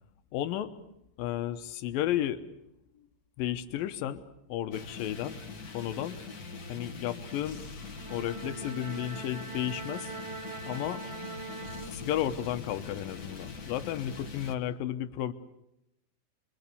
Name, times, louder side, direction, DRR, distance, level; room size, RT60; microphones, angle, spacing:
voice 1, 0.3-0.7 1.2-2.4 3.4-4.2 4.5-5.4 5.7-6.2 6.7-7.6 8.1-10.1 10.7-11.0 11.9-15.3, left 11 dB, 80° left, 10 dB, 2.8 m, -33 dB
sound 1, 4.7-14.5, left 5 dB, 35° left, 1.6 m, -43 dB
Bowed string instrument, 7.9-12.5, right 3 dB, 40° right, 2.1 m, -42 dB
29.0 x 23.0 x 6.9 m, 0.84 s
omnidirectional pair, 4.1 m